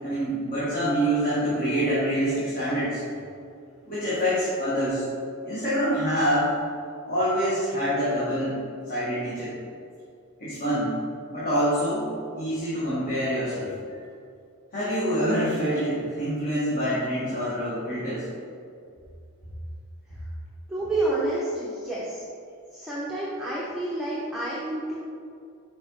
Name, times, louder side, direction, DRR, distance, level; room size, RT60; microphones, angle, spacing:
voice 1, 0.0-3.0 3.9-5.0 5.4-6.5 7.1-8.6 8.9-9.5 10.4-10.9 11.3-12.1 12.3-13.7 14.7-18.3, equal, 40° left, -10 dB, 1.5 m, -26 dB
voice 2, 20.7-22.2 22.7-25.1, right 2 dB, ahead, -8 dB, 0.7 m, -29 dB
6.0 x 4.9 x 3.2 m, 2.4 s
head